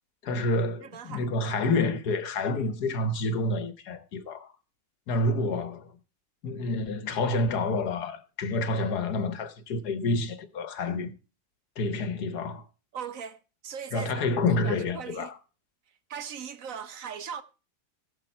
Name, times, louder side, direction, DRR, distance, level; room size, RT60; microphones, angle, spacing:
voice 1, 0.2-4.5 5.1-5.9 6.4-11.1 11.8-12.6 13.9-15.3, left 2 dB, 85° left, 1.8 m, -28 dB
voice 2, 0.8-1.6 12.9-15.3 16.1-17.4, right 7 dB, 60° right, 1.3 m, -40 dB
16.5 x 7.5 x 4.5 m
omnidirectional pair, 1.7 m